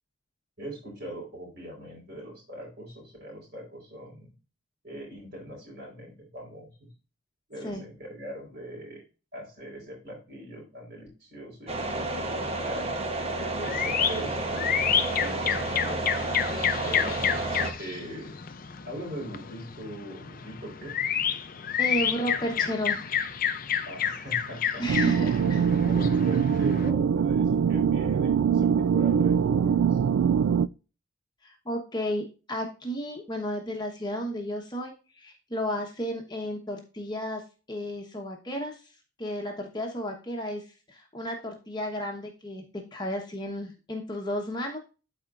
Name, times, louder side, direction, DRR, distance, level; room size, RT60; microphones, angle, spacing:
voice 1, 0.6-4.3 4.8-6.9 7.5-9.0 9.3-12.9 13.6-16.2 16.8-17.2 17.8-18.4 18.8-20.9 23.9-24.8 25.4-30.0, equal, 50° right, -2 dB, 4.3 m, -41 dB
sound 1, 11.7-17.7, right 2 dB, 30° right, 1.0 m, -31 dB
sound 2, 13.6-26.9, left 8 dB, 40° left, 0.5 m, -30 dB
voice 2, 21.8-23.2 24.8-25.6 31.4-37.4 37.7-38.8 39.2-44.8, equal, 20° left, 1 dB, 1.1 m, -33 dB
sound 3, 24.9-30.7, right 7 dB, 80° right, 0.3 m, -23 dB
13.0 x 4.4 x 2.5 m, 0.33 s
head